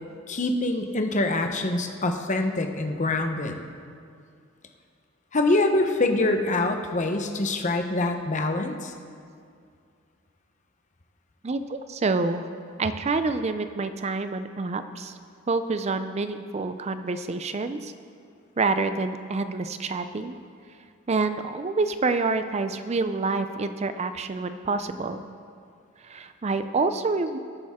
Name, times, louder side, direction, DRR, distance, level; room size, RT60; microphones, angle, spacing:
voice 1, 0.3-3.6 5.3-8.9, left 2 dB, 35° left, 5 dB, 0.9 m, -25 dB
voice 2, 11.4-12.5 12.8-15.1 15.5-17.9 18.6-20.3 21.1-25.2 26.0-27.4, right 3 dB, 30° right, 10 dB, 0.4 m, -27 dB
20.0 x 8.7 x 3.6 m, 2.3 s
head